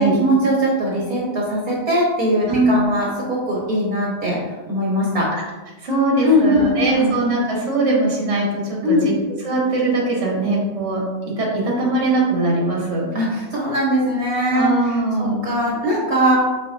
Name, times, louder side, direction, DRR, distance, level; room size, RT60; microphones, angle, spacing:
voice 1, 0.0-4.4 4.7-5.3 6.2-7.1 8.8-9.1 13.1-16.4, equal, 55° right, -5 dB, 1.9 m, -20 dB
voice 2, 5.8-9.1 9.4-13.1 14.5-15.4, right 2 dB, 40° right, -3 dB, 1.9 m, -21 dB
6.6 x 6.1 x 2.8 m, 1.2 s
omnidirectional pair, 1.9 m